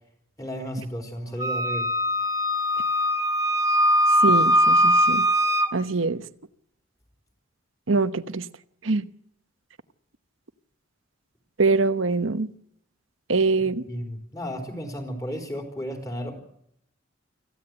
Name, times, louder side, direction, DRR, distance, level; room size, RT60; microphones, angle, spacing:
voice 1, 0.4-1.9 13.6-16.4, equal, 15° left, 4.1 m, -33 dB
Wind instrument woodwind instrument, 1.4-5.7, equal, 15° right, 1.3 m, -21 dB
voice 2, 4.2-5.3 5.7-6.2 7.9-8.5 8.8-9.1 11.6-12.5 13.3-13.8, right 3 dB, 75° right, 1.0 m, -23 dB
25.5 x 15.5 x 7.8 m
head